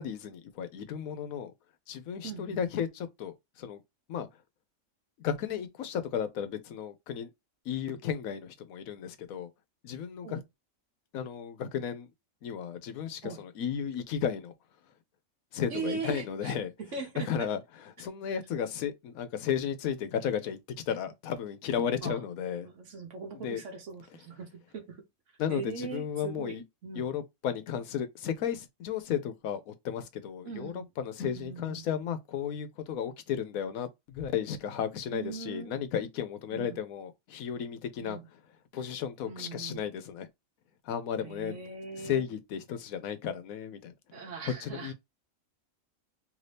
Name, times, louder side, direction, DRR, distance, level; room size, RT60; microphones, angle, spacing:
voice 1, 0.0-1.5 1.9-2.9 3.2-3.8 4.1-4.3 5.2-7.3 7.7-9.5 9.8-10.4 11.1-12.1 12.4-14.5 15.5-16.7 17.2-17.6 18.0-20.6 20.9-22.7 23.4-23.6 25.4-26.6 27.0-38.2 38.7-40.3 40.9-41.5 42.0-43.9 44.6-44.9, left 8 dB, 80° left, 1.1 m, -34 dB
voice 2, 2.2-2.7 10.2-10.4 13.2-13.4 15.7-16.5 16.8-17.5 18.3-18.4 22.0-22.3 22.6-25.0 25.5-27.1 30.4-30.9 31.2-31.9 35.1-35.7 36.5-36.8 38.0-38.3 39.2-39.9 41.1-42.3 44.1-44.9, right 5 dB, 60° right, 1.2 m, -40 dB
3.1 x 2.7 x 3.3 m
omnidirectional pair, 1.5 m